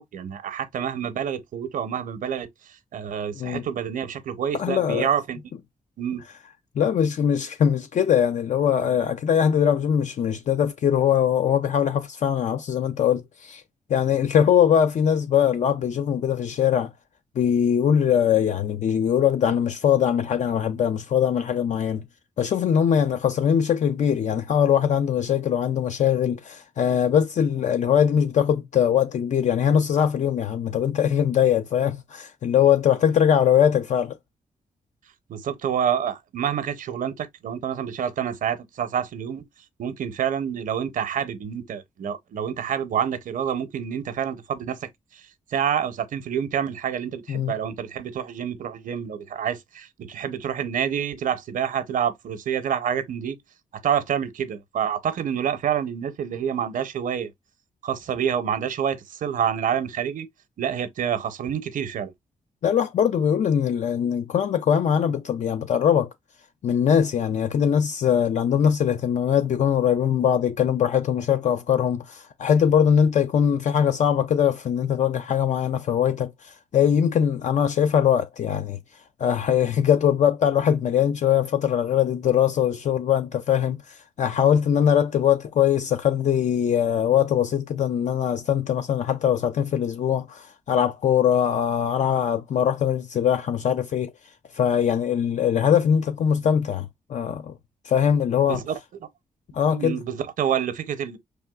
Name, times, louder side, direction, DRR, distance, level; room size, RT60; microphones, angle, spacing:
voice 1, 0.0-2.5 2.9-5.4 6.0-6.2 35.3-39.5 39.8-44.9 45.5-53.4 53.8-57.3 57.8-60.3 60.6-62.1 98.5-99.1 99.7-101.2, right 8 dB, 80° right, 0.7 m, -27 dB
voice 2, 4.5-5.1 6.8-13.6 13.9-16.9 17.4-22.0 22.4-34.2 47.3-47.5 62.6-66.1 66.6-78.8 79.2-94.1 94.5-97.5 97.8-98.6 99.5-100.0, left 8 dB, 65° left, 0.4 m, -21 dB
4.5 x 3.4 x 2.2 m
cardioid pair, 75°, 14 cm